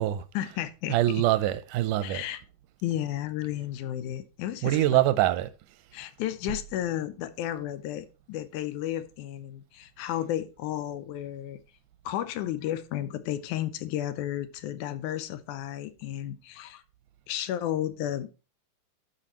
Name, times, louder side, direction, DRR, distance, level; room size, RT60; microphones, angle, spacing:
voice 1, 0.4-1.0 2.0-2.4 2.8-5.1 5.9-11.6 12.1-16.8 17.3-18.3, left 12 dB, 80° left, 2.1 m, -33 dB
voice 2, 0.9-2.2 4.6-5.5, right 14 dB, 90° right, 2.2 m, -24 dB
12.5 x 4.9 x 3.0 m
omnidirectional pair, 3.6 m